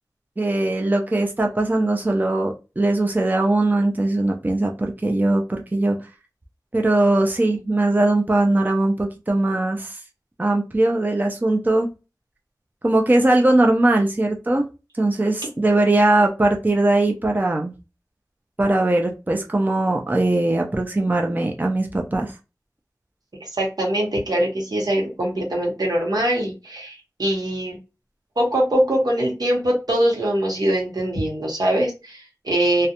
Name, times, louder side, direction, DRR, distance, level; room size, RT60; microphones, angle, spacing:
voice 1, 0.4-6.0 6.7-10.0 10.4-11.9 12.8-14.6 14.9-17.7 18.6-22.3, right 2 dB, 25° right, 2 dB, 0.4 m, -20 dB
voice 2, 23.4-27.8 28.4-32.9, right 1 dB, 80° right, -2 dB, 0.9 m, -22 dB
2.4 x 2.1 x 2.8 m, 0.29 s
wide cardioid pair, 50°, 7 cm